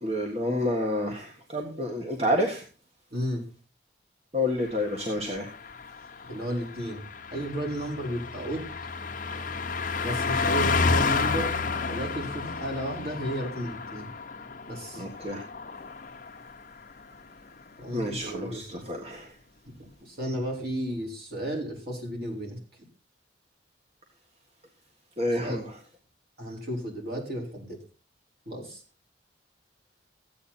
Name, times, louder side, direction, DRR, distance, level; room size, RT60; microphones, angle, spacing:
voice 1, 0.0-2.6 4.3-5.4 9.3-9.4 15.0-15.4 17.9-19.3 25.2-25.6, left 1 dB, 35° right, 2 dB, 1.7 m, -29 dB
voice 2, 3.1-3.4 6.3-7.0 7.3-8.7 10.0-11.6 11.9-14.1 14.7-15.1 17.8-18.8 19.7-22.6 25.3-25.6 26.4-27.8 28.4-28.8, equal, 55° right, 0 dB, 5.0 m, -33 dB
Car passing by, 4.7-16.6 16.9-17.1, left 4 dB, 45° left, 0.9 m, -31 dB
15.0 x 9.0 x 4.3 m, 0.35 s
head